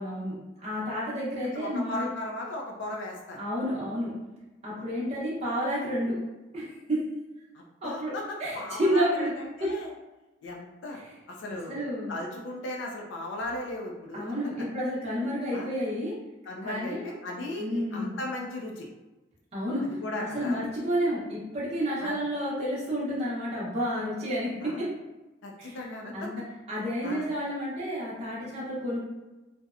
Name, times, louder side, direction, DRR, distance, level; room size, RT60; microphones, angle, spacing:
voice 1, 0.0-2.1 3.4-4.1 4.6-6.2 6.5-7.0 7.8-8.1 8.4-9.3 9.6-9.7 10.9-11.0 11.7-12.1 14.1-16.2 16.6-17.1 17.6-18.1 19.5-19.8 20.2-24.9 25.6-25.8 26.1-29.0, equal, 35° right, -9 dB, 0.7 m, -30 dB
voice 2, 1.5-3.4 7.5-9.9 10.4-11.0 11.3-11.8 12.1-14.3 15.5-15.7 16.5-18.9 20.0-20.6 22.0-22.2 24.6-24.9 25.4-26.3 27.0-27.3, left 1 dB, 85° left, 0 dB, 0.4 m, -37 dB
2.7 x 2.1 x 2.4 m, 1.1 s
head